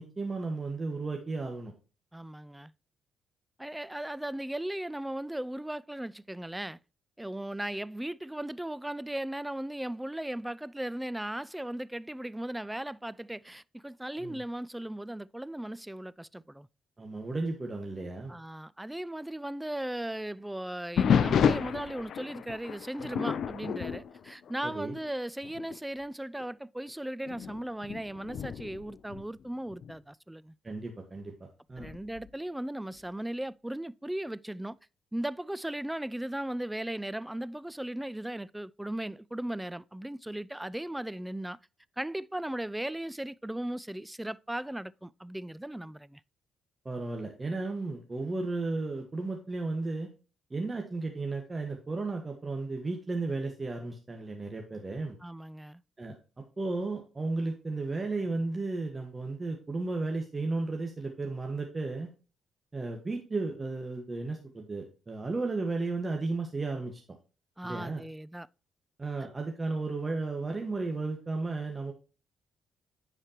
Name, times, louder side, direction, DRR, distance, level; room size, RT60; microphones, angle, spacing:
voice 1, 0.0-1.7 14.2-14.4 17.0-18.4 24.6-24.9 30.6-31.3 31.7-31.9 46.8-50.1 50.5-55.2 56.0-56.1 56.6-62.1 62.7-67.0 67.6-68.0 69.0-71.9, right 3 dB, 30° right, 1.5 m, -34 dB
voice 2, 2.1-2.7 3.6-6.8 7.2-16.7 18.3-30.5 31.8-34.8 35.1-41.6 42.0-46.2 55.2-55.8 67.6-68.5, right 1 dB, 10° right, 0.4 m, -37 dB
sound 1, 21.0-25.1 25.4-25.8 26.4-26.5 27.2-29.9 31.8-32.3, left 7 dB, 65° left, 0.5 m, -30 dB
9.8 x 4.9 x 2.9 m
supercardioid pair, 55°, 0 cm